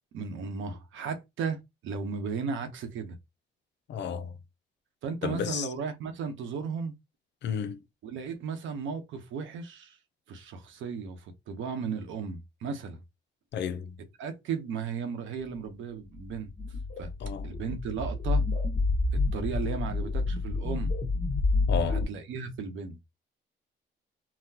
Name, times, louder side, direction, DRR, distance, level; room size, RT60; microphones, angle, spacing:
voice 1, 0.1-3.2 5.0-6.9 8.0-10.0 10.3-13.0 14.2-16.5 17.0-17.1 17.4-18.4 19.1-20.9 21.9-23.0, right 5 dB, 80° right, 0.9 m, -35 dB
voice 2, 3.9-4.3 5.2-5.7 7.4-7.8 13.5-14.0 17.2-17.5 21.7-22.0, left 7 dB, 60° left, 0.5 m, -32 dB
sound 1, 16.3-22.0, left 3 dB, 35° left, 1.2 m, -28 dB
4.0 x 2.1 x 2.8 m
cardioid pair, 90°, 20 cm